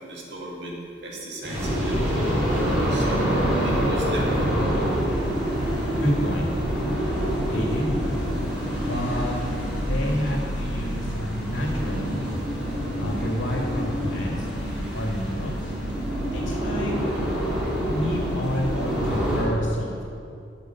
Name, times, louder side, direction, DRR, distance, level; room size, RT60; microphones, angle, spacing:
voice 1, 0.0-2.3 2.9-4.6, right 1 dB, 60° right, -2 dB, 2.1 m, -35 dB
sound 1, 1.4-14.6 14.9-15.0, equal, 40° right, 2.5 m, -34 dB
sound 2, 1.5-19.4, equal, 5° right, 2.8 m, -27 dB
voice 2, 5.9-6.5 7.5-8.0 8.8-9.5 9.8-12.3 13.0-14.5 14.9-15.8 16.3-16.9 17.9-20.0, equal, 70° left, -1 dB, 2.2 m, -29 dB
12.0 x 5.7 x 6.5 m, 2.5 s
head